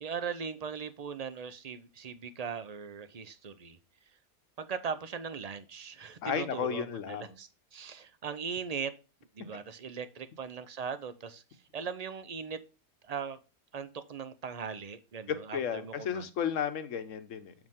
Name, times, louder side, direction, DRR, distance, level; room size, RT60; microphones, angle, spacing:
voice 1, 0.0-3.8 4.6-8.9 9.3-11.4 11.7-12.6 13.1-13.4 13.7-16.3, right 6 dB, 45° right, 0.5 m, -39 dB
voice 2, 6.2-7.3 15.5-17.5, left 8 dB, 60° left, 1.2 m, -33 dB
7.8 x 4.9 x 3.6 m
omnidirectional pair, 1.5 m